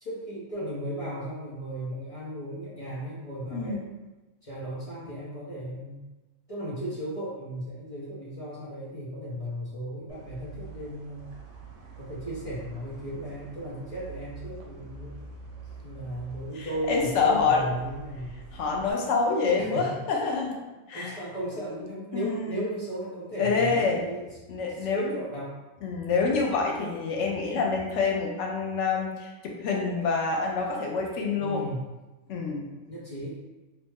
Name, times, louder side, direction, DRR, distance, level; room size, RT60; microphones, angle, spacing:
voice 1, 0.0-3.8 4.4-6.0 6.5-11.3 12.0-15.2 15.8-18.4 19.6-19.8 20.9-24.3 24.9-25.5 31.3-31.8 32.9-33.4, right 1 dB, 35° left, -8 dB, 0.7 m, -36 dB
voice 2, 3.5-3.8 16.6-17.6 18.5-20.6 20.9-21.2 22.1-22.6 23.4-24.0 24.5-25.1 25.8-31.6 32.3-32.7, left 4 dB, 80° left, 0 dB, 0.9 m, -27 dB
sound 1, 10.1-18.9, right 5 dB, 80° right, 0.9 m, -45 dB
3.0 x 2.0 x 3.3 m, 1.1 s
omnidirectional pair, 1.2 m